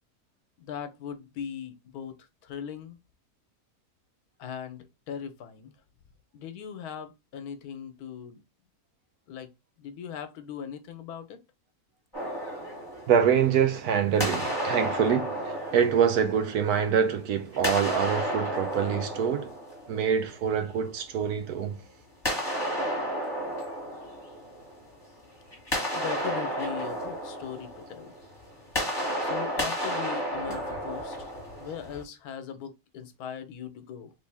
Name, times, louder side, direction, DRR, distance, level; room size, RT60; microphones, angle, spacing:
voice 1, 0.6-3.0 4.4-5.7 6.3-8.4 9.3-9.5 9.8-11.4 25.9-28.1 29.2-31.2 31.6-34.1, left 8 dB, 85° left, 1.2 m, -39 dB
sound 1, 12.1-13.8 14.2-17.0 17.5-20.4 22.2-25.0 25.3-32.0, equal, 15° left, 1.3 m, -32 dB
voice 2, 13.1-19.5 19.9-21.8 30.5-30.6, right 7 dB, 85° right, 1.2 m, -25 dB
3.5 x 2.6 x 3.4 m
omnidirectional pair, 1.6 m